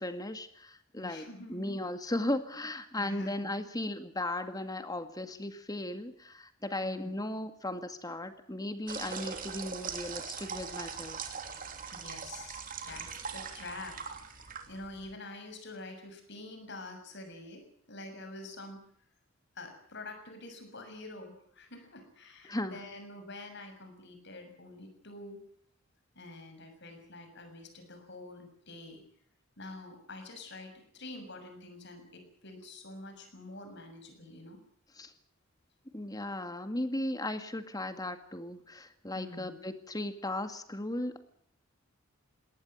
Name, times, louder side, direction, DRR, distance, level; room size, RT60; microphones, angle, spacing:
voice 1, 0.0-11.2 22.5-22.8 35.0-35.1 35.9-41.2, left 1 dB, 20° left, 9 dB, 1.9 m, -36 dB
voice 2, 1.0-1.7 3.0-3.3 6.8-7.2 11.9-18.8 19.5-25.4 26.1-29.0 29.6-34.6 39.1-39.6, left 2 dB, 55° left, 7 dB, 6.7 m, -47 dB
sound 1, 8.9-15.1, right 6 dB, 40° right, 3.1 m, -41 dB
21.0 x 18.5 x 9.0 m, 0.65 s
head